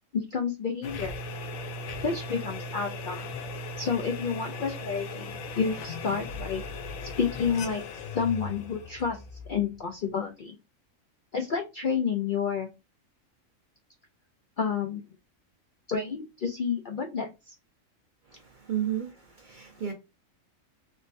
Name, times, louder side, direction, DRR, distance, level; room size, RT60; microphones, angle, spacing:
voice 1, 0.1-1.2 2.0-3.2 3.8-6.6 7.2-9.2 9.5-10.6 11.3-12.7 14.6-15.0 15.9-17.5, left 6 dB, 60° left, 0.5 m, -30 dB
sound 1, 0.8-10.0, left 2 dB, 85° left, 1.0 m, -38 dB
voice 2, 18.7-19.1 19.4-19.9, right 10 dB, 50° right, 0.6 m, -31 dB
3.2 x 3.1 x 2.5 m
omnidirectional pair, 1.4 m